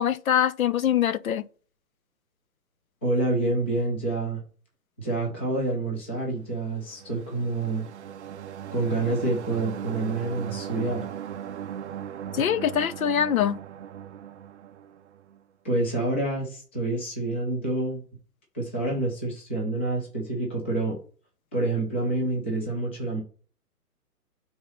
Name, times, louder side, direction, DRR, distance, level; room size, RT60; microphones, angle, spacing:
voice 1, 0.0-1.5 12.3-13.6, left 9 dB, 60° left, 0.6 m, -23 dB
voice 2, 3.0-4.4 5.0-7.8 8.7-11.1 15.6-18.0 18.5-21.0 21.5-23.2, right 2 dB, 10° left, 0.5 m, -27 dB
sound 1, 6.7-15.4, right 9 dB, 50° right, 0.4 m, -38 dB
5.4 x 4.0 x 5.7 m
hypercardioid pair, 155°, 47 cm